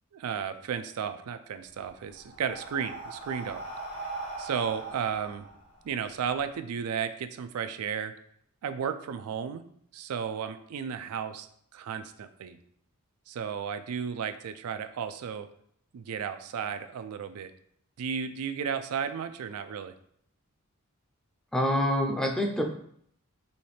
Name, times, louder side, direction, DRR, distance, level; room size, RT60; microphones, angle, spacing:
voice 1, 0.1-3.6 4.4-5.5 5.8-8.1 8.6-9.6 9.9-11.5 11.7-12.6 13.3-15.5 15.9-17.5 18.0-19.9, right 7 dB, 90° right, 10 dB, 0.4 m, -34 dB
Breathing, 1.6-6.4, right 2 dB, 80° left, 1.6 m, -40 dB
voice 2, 21.5-22.6, left 1 dB, 5° left, 2 dB, 0.4 m, -26 dB
4.2 x 3.1 x 3.2 m, 0.66 s
head